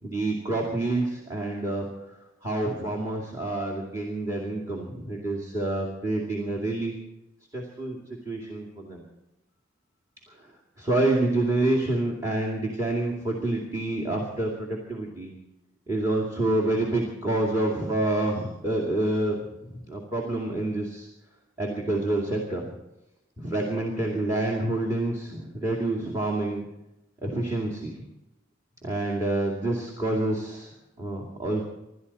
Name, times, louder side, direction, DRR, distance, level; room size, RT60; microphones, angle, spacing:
voice 1, 0.0-1.9 2.4-6.9 7.5-8.0 8.3-9.0 10.8-15.3 15.9-21.1 21.6-22.7 23.4-26.6 27.2-27.9 28.8-30.7 31.0-31.6, right 2 dB, 15° right, 0 dB, 2.4 m, -27 dB
27.0 x 12.5 x 4.2 m, 0.93 s
head